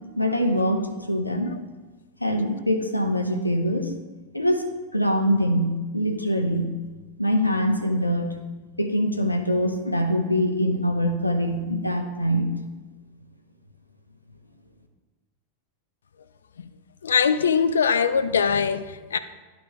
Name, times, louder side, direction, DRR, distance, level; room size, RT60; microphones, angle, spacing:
voice 1, 0.2-1.5 2.2-3.9 4.3-6.8 7.2-8.4 8.8-12.5, equal, 85° left, 0.8 m, -24 dB
voice 2, 17.0-19.2, left 6 dB, 70° left, 0.4 m, -22 dB
11.5 x 5.2 x 3.0 m
figure-of-eight pair, 90°, 0 cm